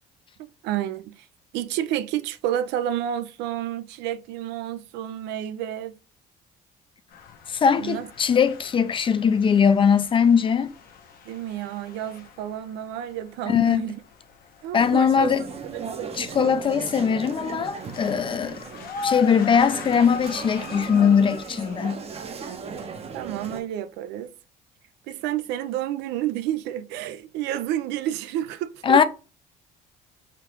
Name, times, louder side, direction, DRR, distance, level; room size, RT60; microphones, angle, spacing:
voice 1, 0.4-1.3 1.5-6.0 7.8-8.1 11.3-14.0 14.6-15.3 15.7-16.1 22.4-24.3 25.1-29.0, right 11 dB, 90° right, 0.4 m, -30 dB
sound 1, 7.1-22.5, left 5 dB, 60° left, 0.8 m, -41 dB
voice 2, 7.5-10.7 13.5-13.8 14.7-15.5 16.2-18.6 19.0-22.0 28.8-29.0, left 7 dB, 30° left, 0.4 m, -20 dB
sound 2, 14.8-23.6, right 5 dB, 35° right, 0.6 m, -37 dB
3.5 x 2.4 x 4.4 m
cardioid pair, 110°, 17 cm